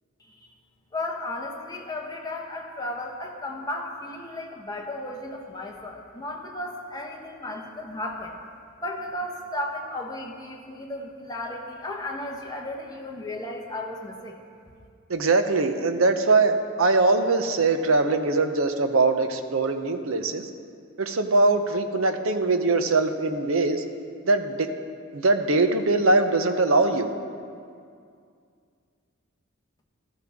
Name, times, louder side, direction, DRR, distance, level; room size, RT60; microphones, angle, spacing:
voice 1, 0.9-8.4 8.8-14.4, left 1 dB, 20° left, 0 dB, 1.1 m, -34 dB
voice 2, 15.1-20.5 21.0-23.8 24.2-24.7 25.1-27.1, right 3 dB, 70° right, 7 dB, 0.8 m, -22 dB
13.5 x 13.0 x 3.6 m, 2.3 s
head